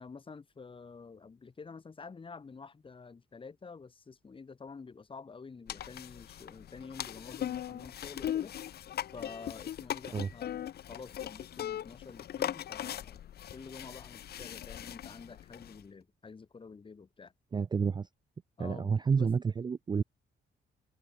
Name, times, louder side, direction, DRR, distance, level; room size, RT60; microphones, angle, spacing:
voice 1, 0.0-8.5 9.1-13.2 13.5-17.3 18.6-19.3, left 4 dB, 25° left, 1.4 m, -49 dB
sound 1, 5.7-15.8, left 11 dB, 55° left, 0.5 m, -39 dB
voice 2, 17.5-18.1 18.6-20.0, right 5 dB, 20° right, 0.3 m, -29 dB
cardioid pair, 140°, 20 cm